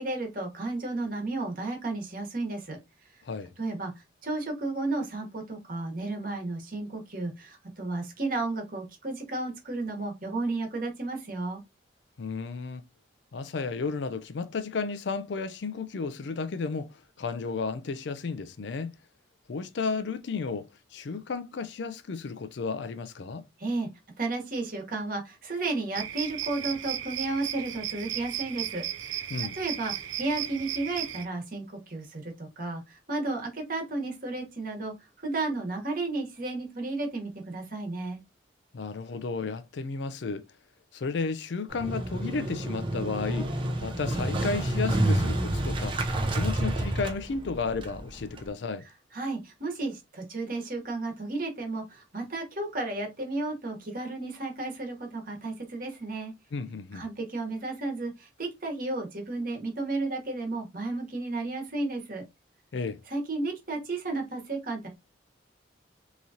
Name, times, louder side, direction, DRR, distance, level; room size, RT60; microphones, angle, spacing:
voice 1, 0.0-2.8 3.6-3.9 4.2-11.6 23.6-23.9 24.2-29.3 29.5-34.9 35.2-38.2 49.1-56.3 56.9-62.2 63.1-64.9, right 2 dB, 45° right, 1.2 m, -33 dB
voice 2, 3.2-3.5 12.2-12.8 13.3-19.0 19.5-23.5 29.3-29.6 38.7-40.4 40.9-46.0 46.3-48.9 56.5-57.0 62.7-63.0, left 4 dB, 65° left, 0.4 m, -33 dB
sound 1, 25.9-31.2, right 11 dB, 80° right, 0.5 m, -35 dB
Motorcycle, 41.7-48.5, right 1 dB, 25° right, 0.6 m, -29 dB
3.8 x 2.9 x 2.7 m
head